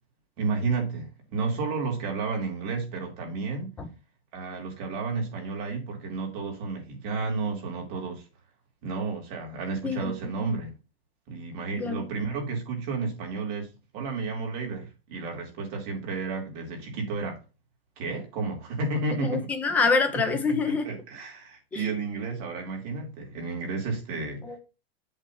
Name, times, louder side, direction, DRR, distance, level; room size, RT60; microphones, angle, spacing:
voice 1, 0.4-3.7 4.3-8.2 8.8-10.7 11.3-13.7 13.9-17.4 18.0-19.5 20.1-24.4, right 4 dB, 35° right, 2.6 m, -32 dB
voice 2, 9.8-10.1 10.4-10.5 11.8-12.1 19.2-20.9 21.7-21.8 24.4-24.6, left 4 dB, 5° left, 0.3 m, -26 dB
8.1 x 3.2 x 6.0 m
supercardioid pair, 175°, 30 cm